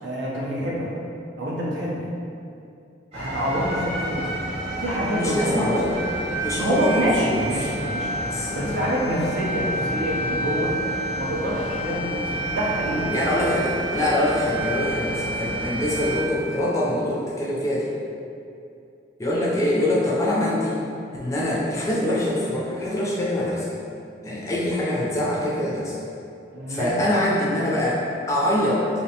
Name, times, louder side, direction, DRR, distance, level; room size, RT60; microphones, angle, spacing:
voice 1, 0.0-0.9 1.4-2.0 3.1-4.3 4.8-5.8 6.6-8.2 8.5-10.8 11.2-13.1 26.5-27.0, equal, 80° right, -5 dB, 0.5 m, -26 dB
sound 1, 3.1-16.2, right 1 dB, 35° right, 0.7 m, -29 dB
voice 2, 5.1-5.9 6.4-7.5 8.3-8.8 13.1-17.9 19.2-20.8 21.2-23.7 24.2-25.9 26.7-28.8, left 1 dB, 15° left, -6 dB, 0.3 m, -24 dB
2.6 x 2.1 x 2.7 m, 2.6 s
head